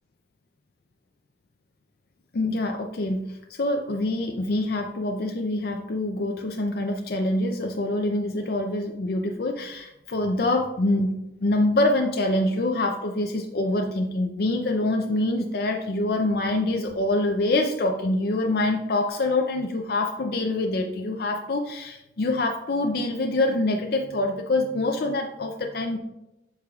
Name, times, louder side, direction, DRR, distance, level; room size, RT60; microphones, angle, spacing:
voice 1, 2.3-26.0, left 2 dB, 60° left, 3 dB, 0.5 m, -25 dB
7.9 x 6.7 x 2.4 m, 0.92 s
head